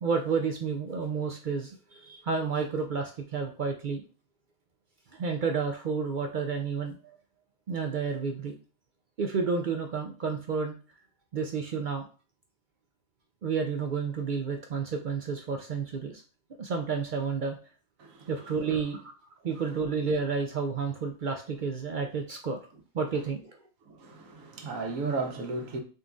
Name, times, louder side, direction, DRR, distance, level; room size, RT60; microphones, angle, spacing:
voice 1, 0.0-4.0 5.1-7.2 7.7-8.5 9.2-10.7 11.3-12.1 13.4-16.2 16.6-17.6 18.3-19.1 19.4-22.6 22.9-23.6, right 5 dB, 65° right, 0.5 m, -31 dB
voice 2, 18.0-18.3 23.9-25.8, right 3 dB, 90° right, 1.2 m, -34 dB
3.9 x 2.3 x 3.7 m
omnidirectional pair, 1.4 m